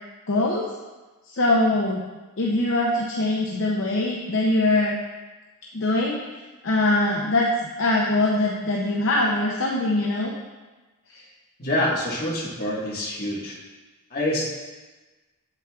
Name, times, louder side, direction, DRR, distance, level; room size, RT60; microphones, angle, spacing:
voice 1, 0.3-0.6 1.3-2.0 2.4-5.0 5.7-6.2 6.6-7.5 7.8-10.3 11.1-11.2, left 2 dB, 60° left, -2 dB, 0.6 m, -22 dB
voice 2, 11.6-13.5 14.1-14.5, left 1 dB, 45° left, -5 dB, 1.5 m, -26 dB
7.8 x 7.3 x 2.4 m, 1.2 s
head